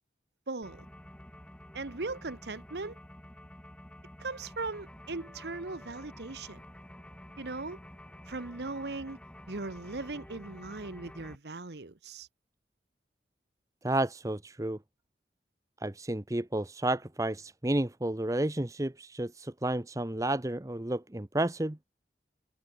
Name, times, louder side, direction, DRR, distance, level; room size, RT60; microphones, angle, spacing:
voice 1, 0.5-0.9 1.7-3.0 4.2-6.6 7.4-7.8 8.3-9.2 9.5-12.3, right 3 dB, 70° right, 1.1 m, -38 dB
sound 1, 0.6-11.3, left 1 dB, 5° left, 1.1 m, -50 dB
voice 2, 13.8-14.8 15.8-21.8, right 1 dB, 20° right, 0.8 m, -31 dB
head